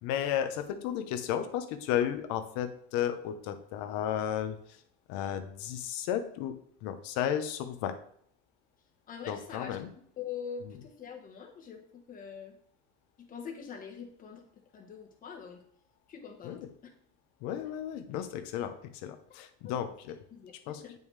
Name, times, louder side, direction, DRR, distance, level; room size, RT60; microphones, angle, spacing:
voice 1, 0.0-4.8 5.1-8.0 9.3-9.9 16.4-16.7 17.4-20.2 20.7-20.8, left 10 dB, 60° left, 9 dB, 0.9 m, -33 dB
voice 2, 9.1-9.8 10.2-12.6 13.2-14.4 14.7-15.6 16.1-16.6 19.6-19.8 20.3-20.9, left 7 dB, 25° left, 2 dB, 1.2 m, -43 dB
9.2 x 5.5 x 3.3 m, 0.64 s
cardioid pair, 175°, 34 cm